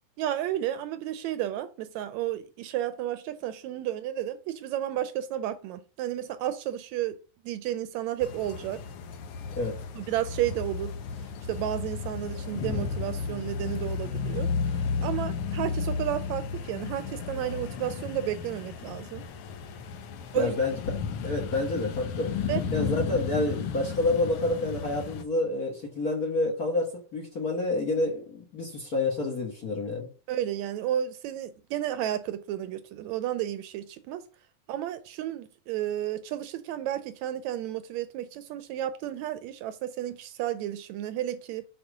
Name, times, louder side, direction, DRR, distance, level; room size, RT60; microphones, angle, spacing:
voice 1, 0.2-7.2 7.4-8.8 9.9-10.9 11.5-19.2 20.3-20.6 22.5-22.6 30.3-34.3 34.7-41.7, right 12 dB, 80° right, 1.8 m, -32 dB
sound 1, 8.2-25.2, left 5 dB, 70° left, 1.4 m, -33 dB
voice 2, 20.3-20.8 21.2-30.1, left 2 dB, 45° left, 1.2 m, -28 dB
7.9 x 4.3 x 5.0 m
omnidirectional pair, 3.5 m